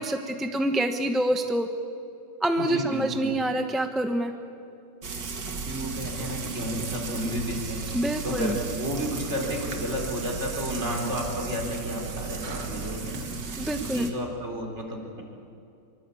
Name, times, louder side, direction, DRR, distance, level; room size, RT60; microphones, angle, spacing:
voice 1, 0.0-1.7 2.4-4.3 7.9-8.6 13.6-14.1, right 1 dB, ahead, 5 dB, 0.8 m, -26 dB
voice 2, 2.6-3.3 5.6-7.8 8.2-13.5 13.8-15.2, equal, 40° right, 1 dB, 4.3 m, -32 dB
Frying (food), 5.0-14.1, right 4 dB, 85° right, 2.6 m, -34 dB
25.0 x 23.5 x 8.6 m, 2.6 s
omnidirectional pair, 1.8 m